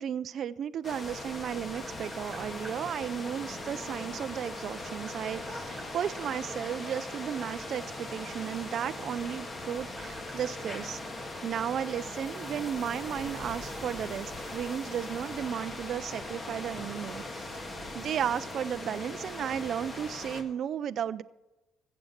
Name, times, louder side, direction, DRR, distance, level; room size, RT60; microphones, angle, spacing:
voice 1, 0.0-11.0 11.4-17.6 17.9-21.2, right 9 dB, 55° right, 12 dB, 0.4 m, -34 dB
sound 1, 0.8-20.4, left 2 dB, 25° left, 1.7 m, -40 dB
Tap, 1.5-2.8 4.1-6.3 7.0-9.2 9.5-11.5, right 1 dB, 5° right, 4.9 m, -52 dB
15.0 x 7.8 x 7.3 m, 1.0 s
cardioid pair, 120°, 0 cm